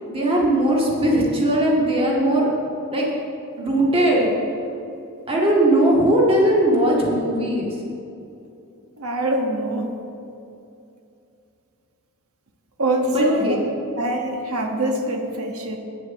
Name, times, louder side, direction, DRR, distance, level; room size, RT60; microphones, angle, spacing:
voice 1, 0.1-2.5 2.9-3.1 3.6-4.3 5.3-7.8 13.1-13.6, right 1 dB, 25° right, -3 dB, 2.0 m, -19 dB
voice 2, 9.0-9.9 12.8-13.6 14.0-15.8, right 1 dB, 75° right, 3 dB, 1.4 m, -24 dB
9.7 x 7.7 x 7.1 m, 2.6 s
head